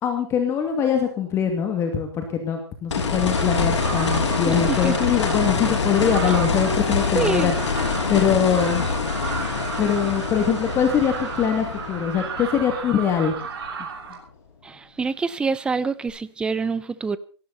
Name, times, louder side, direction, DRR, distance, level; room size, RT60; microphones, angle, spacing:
voice 1, 0.0-7.5 8.1-8.9 9.8-13.4, left 7 dB, 20° left, 2.4 m, -23 dB
sound 1, 2.9-13.8 16.1-16.2, left 5 dB, 80° left, 6.7 m, -25 dB
sound 2, 3.3-14.2, right 6 dB, 55° right, 6.1 m, -34 dB
voice 2, 4.5-5.0 7.2-7.5 14.6-17.2, right 4 dB, 5° right, 0.6 m, -26 dB
18.0 x 16.0 x 4.2 m
hypercardioid pair, 150°, 15 cm